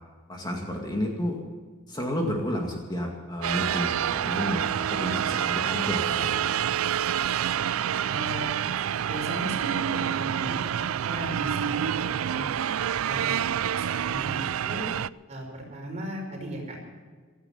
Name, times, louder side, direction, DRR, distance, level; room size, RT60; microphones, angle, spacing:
voice 1, 0.3-1.3 1.9-6.3, equal, 20° left, 0 dB, 2.1 m, -31 dB
sound 1, 3.4-15.1, right 9 dB, 80° right, 0.4 m, -27 dB
voice 2, 8.1-8.6 9.1-12.5 13.0-13.4 13.7-14.9 15.3-16.8, right 1 dB, 35° right, 0 dB, 5.2 m, -37 dB
16.5 x 13.5 x 5.8 m, 1.5 s
head